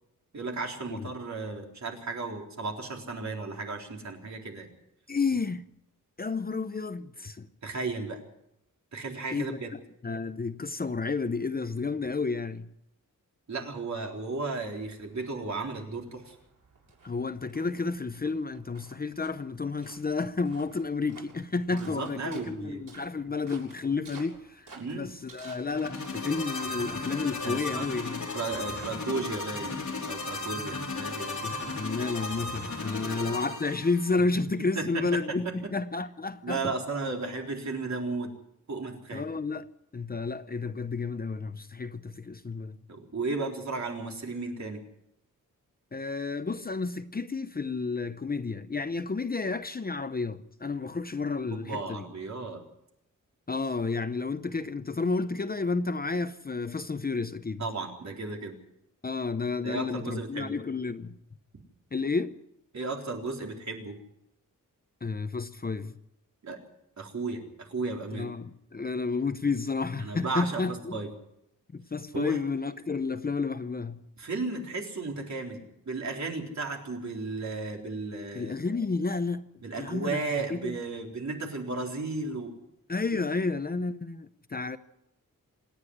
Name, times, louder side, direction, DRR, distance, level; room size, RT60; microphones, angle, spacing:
voice 1, 0.3-4.7 7.6-8.2 8.9-9.7 13.5-16.4 21.7-22.8 24.7-25.1 27.4-27.9 28.3-29.8 30.1-31.4 33.0-33.3 34.7-35.5 36.4-38.3 38.7-39.2 42.9-44.8 51.5-52.6 57.6-58.6 59.6-60.6 62.7-64.0 66.4-66.6 67.0-68.3 70.0-71.1 72.1-72.4 74.2-78.6 79.6-82.5 83.1-83.3, right 3 dB, 55° right, 3.9 m, -34 dB
voice 2, 5.1-5.7 6.2-7.5 9.3-9.6 10.0-12.7 17.0-28.3 31.4-36.7 39.1-39.7 39.9-42.8 45.9-52.0 53.5-57.6 59.0-61.2 61.9-62.4 65.0-65.9 68.1-71.0 71.7-74.0 78.3-79.5 79.8-80.2 80.5-80.8 82.9-84.8, left 4 dB, 30° left, 0.7 m, -31 dB
sound 1, 14.5-32.2, right 4 dB, 85° right, 7.0 m, -55 dB
sound 2, 25.7-34.2, left 3 dB, 60° left, 3.6 m, -35 dB
27.5 x 9.8 x 9.7 m
wide cardioid pair, 170°, 32 cm